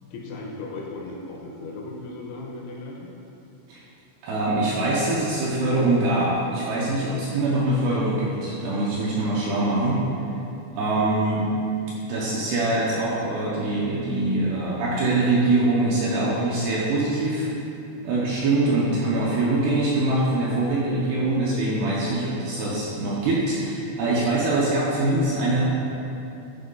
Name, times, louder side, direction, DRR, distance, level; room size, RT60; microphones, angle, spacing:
voice 1, 0.0-3.1, left 2 dB, 80° left, -1 dB, 2.9 m, -36 dB
voice 2, 4.2-10.0 10.7-11.5 12.1-17.5 18.0-25.6, right 2 dB, 75° right, -6 dB, 2.5 m, -23 dB
11.0 x 4.9 x 3.9 m, 2.7 s
omnidirectional pair, 5.6 m